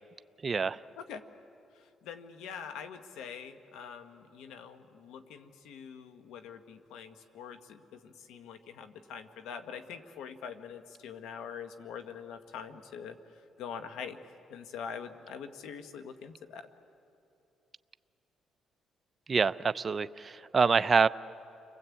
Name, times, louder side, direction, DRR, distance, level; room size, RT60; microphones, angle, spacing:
voice 1, 0.4-0.8 19.3-21.1, right 5 dB, 35° right, 12 dB, 0.6 m, -26 dB
voice 2, 1.7-14.2 14.5-16.7, left 7 dB, 90° left, 8 dB, 1.5 m, -44 dB
30.0 x 23.0 x 8.5 m, 2.7 s
cardioid pair, 90°, 0 cm